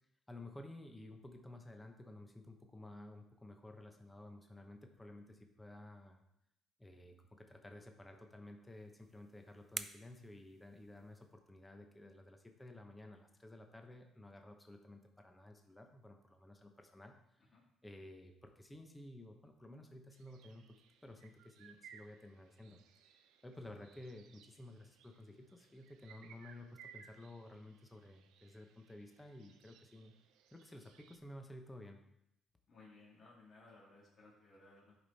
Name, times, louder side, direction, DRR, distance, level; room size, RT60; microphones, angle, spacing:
voice 1, 0.3-6.2 6.8-17.4 17.8-20.6 21.0-30.1 30.5-32.0, left 1 dB, 10° left, 4 dB, 0.9 m, -54 dB
sound 1, 8.7-11.4, right 4 dB, 25° right, 0.4 m, -50 dB
sound 2, 20.1-31.2, right 8 dB, 90° right, 0.6 m, -62 dB
voice 2, 32.7-34.9, left 3 dB, 40° left, -6 dB, 2.2 m, -60 dB
11.0 x 5.1 x 4.1 m, 0.81 s
cardioid pair, 125°, 0 cm